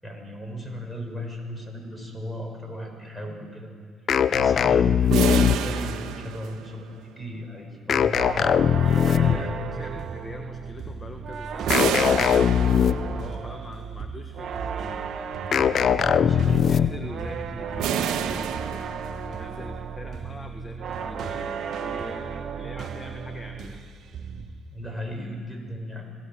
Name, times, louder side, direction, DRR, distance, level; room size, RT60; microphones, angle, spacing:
voice 1, 0.0-3.7 4.3-8.6 9.0-9.6 9.9-10.0 16.0-16.7 22.6-22.7 24.7-26.1, equal, 5° left, 2 dB, 6.8 m, -36 dB
sound 1, 4.1-5.9 7.9-9.6 11.7-13.2 15.5-17.1, left 8 dB, 55° left, 0.7 m, -20 dB
voice 2, 4.4-4.8 8.8-12.7 13.0-15.1 16.1-23.8, left 1 dB, 20° left, 5 dB, 1.8 m, -43 dB
sound 2, 5.1-7.0 11.7-13.3 17.8-19.4, right 9 dB, 75° right, 1.4 m, -29 dB
sound 3, 8.1-23.9 24.1-24.6, right 6 dB, 60° right, 1.7 m, -34 dB
26.5 x 17.0 x 7.8 m, 2.1 s
supercardioid pair, 75°, 0 cm